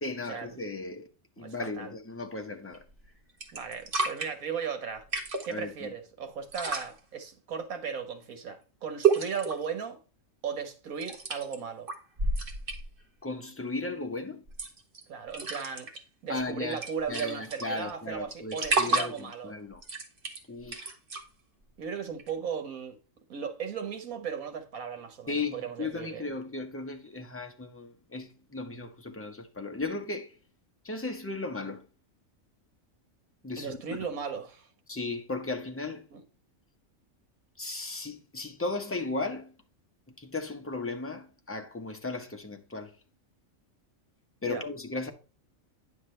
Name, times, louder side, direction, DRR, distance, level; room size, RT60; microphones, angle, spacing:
voice 1, 0.0-1.1 1.4-2.8 5.5-5.9 13.2-14.4 16.3-16.8 17.1-19.8 20.5-21.0 25.3-30.3 30.8-31.8 33.4-34.0 34.9-36.1 37.6-39.5 40.1-42.9 44.4-45.1, left 3 dB, 10° left, 0.9 m, -36 dB
voice 2, 1.4-1.9 3.5-5.1 5.4-10.0 10.4-11.9 15.1-15.9 16.2-19.6 21.8-23.0 23.3-26.2 33.6-34.7 36.1-36.2 44.4-44.6, right 6 dB, 85° right, 1.7 m, -36 dB
sound 1, 2.7-3.1 3.4-4.3 5.0-5.5 6.4-6.9 9.0-9.6 11.0-11.5 11.9-13.0 14.5-15.0 15.3-16.0 16.4-16.5 16.7-17.9 18.3-19.3 19.7-21.2 22.2-22.3, right 4 dB, 40° right, 1.3 m, -30 dB
9.9 x 6.0 x 3.2 m
omnidirectional pair, 1.4 m